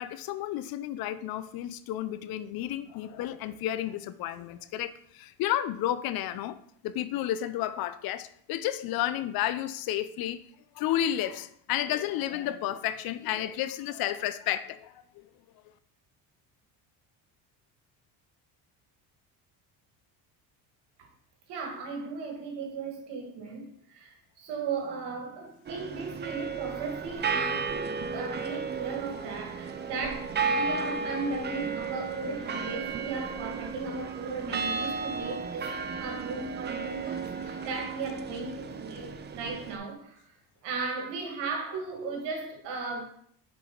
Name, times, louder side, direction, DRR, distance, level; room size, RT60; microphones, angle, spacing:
voice 1, 0.0-6.6 6.8-10.4 10.8-14.9 37.5-37.7, left 12 dB, 60° left, 0.5 m, -32 dB
voice 2, 21.5-40.3 40.6-43.0, right 4 dB, 80° right, 1.9 m, -36 dB
sound 1, 25.7-39.8, right 5 dB, 25° right, 0.5 m, -34 dB
5.9 x 4.8 x 3.8 m
cardioid pair, 100°, 41 cm